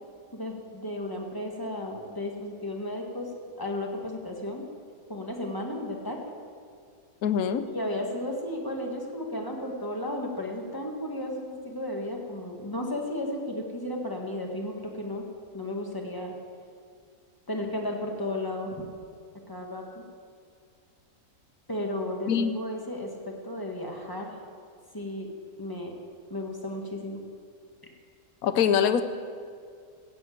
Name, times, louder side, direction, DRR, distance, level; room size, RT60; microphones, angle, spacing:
voice 1, 0.3-3.3 3.6-4.6 5.1-6.2 7.7-15.2 15.5-16.3 17.5-18.8 19.5-20.0 21.7-24.3 24.9-25.3 25.6-25.9 26.3-27.2, left 1 dB, 15° left, 1 dB, 1.6 m, -34 dB
voice 2, 7.2-7.6 22.3-22.5 28.4-29.0, left 8 dB, 65° left, 10 dB, 1.2 m, -23 dB
16.0 x 7.8 x 8.6 m, 2.2 s
omnidirectional pair, 1.8 m